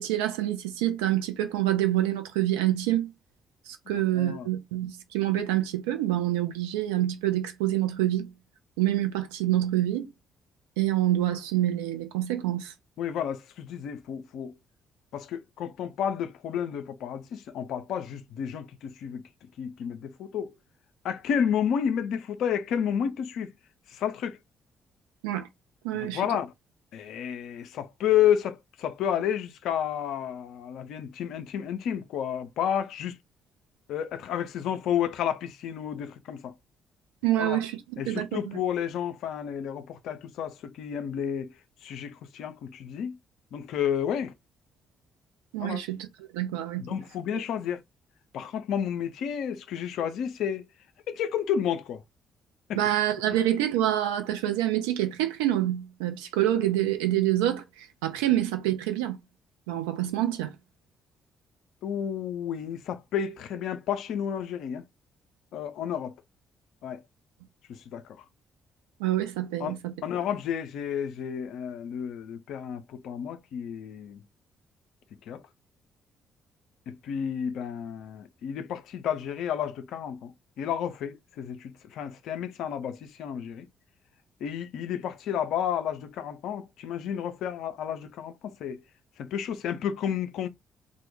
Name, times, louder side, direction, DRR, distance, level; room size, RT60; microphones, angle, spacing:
voice 1, 0.0-3.1 3.7-8.3 8.8-10.1 10.8-12.7 25.2-25.5 25.8-26.2 37.2-37.8 38.1-38.6 45.5-46.0 46.3-46.8 52.7-59.2 59.7-60.5 69.0-69.8, right 13 dB, 75° right, 0.4 m, -26 dB
voice 2, 3.9-4.5 13.0-14.5 15.1-19.2 19.6-20.5 21.0-23.5 23.9-24.4 25.9-26.5 26.9-33.2 33.9-36.5 37.4-37.6 38.0-41.5 41.8-43.2 43.5-44.3 45.6-45.8 46.8-47.8 48.3-50.7 51.1-52.0 52.7-52.8 61.8-64.8 65.5-66.1 66.8-67.0 67.7-68.2 69.6-74.2 75.3-75.4 76.9-83.7 84.4-88.8 89.2-90.5, left 9 dB, 65° left, 0.3 m, -31 dB
2.1 x 2.0 x 3.0 m
figure-of-eight pair, 45°, 0 cm